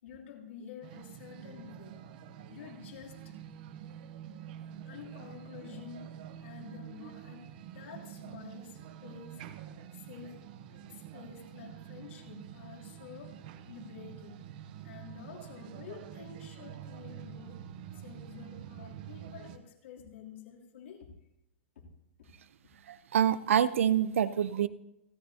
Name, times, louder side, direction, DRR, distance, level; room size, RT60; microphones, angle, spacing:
voice 1, 0.0-2.0 2.5-3.3 4.8-9.4 9.9-14.4 14.8-17.6 17.9-21.1 21.7-21.9, left 7 dB, 70° left, -1 dB, 3.0 m, -49 dB
sound 1, 0.8-19.6, right 10 dB, 40° right, 0.9 m, -47 dB
voice 2, 22.9-24.7, right 9 dB, 90° right, 15 dB, 0.7 m, -26 dB
28.5 x 10.5 x 2.8 m, 0.87 s
supercardioid pair, 170°, 7 cm